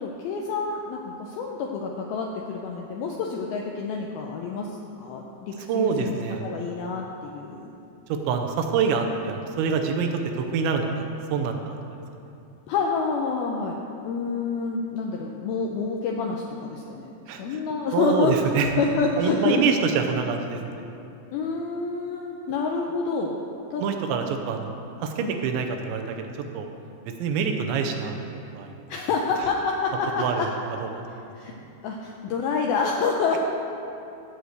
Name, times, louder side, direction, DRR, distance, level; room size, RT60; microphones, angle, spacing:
voice 1, 0.0-6.1 6.4-7.7 12.7-13.8 14.0-18.3 18.8-19.6 21.3-23.4 23.7-23.8 25.2-25.4 28.9-30.5 31.3-31.5 31.8-33.4, left 4 dB, 85° left, 0 dB, 2.2 m, -28 dB
voice 2, 5.7-6.5 8.1-11.6 17.3-17.6 17.9-18.7 19.2-20.8 23.8-24.7 25.0-26.7 27.2-28.7 30.2-30.5 30.8-30.9, right 6 dB, 80° right, 4 dB, 3.1 m, -26 dB
14.0 x 4.9 x 8.0 m, 2.7 s
omnidirectional pair, 5.1 m